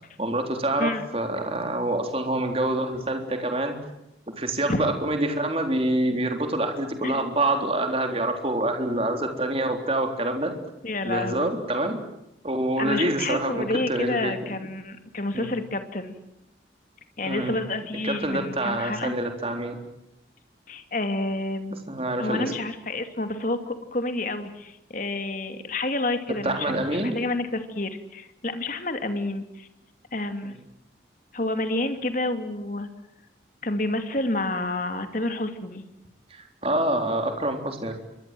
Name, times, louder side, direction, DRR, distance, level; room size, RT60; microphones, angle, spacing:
voice 1, 0.2-3.8 4.3-10.5 11.0-12.0 12.4-14.3 15.3-15.5 17.2-17.6 18.0-19.8 21.9-22.5 26.4-27.2 36.3-37.9, right 1 dB, 35° right, 4 dB, 3.8 m, -26 dB
voice 2, 10.8-11.5 12.8-16.1 17.2-19.2 20.7-21.8 22.2-29.7 30.1-30.6 31.3-32.9 33.6-35.8, left 2 dB, 45° left, 8 dB, 2.6 m, -29 dB
28.5 x 24.0 x 7.8 m, 0.85 s
head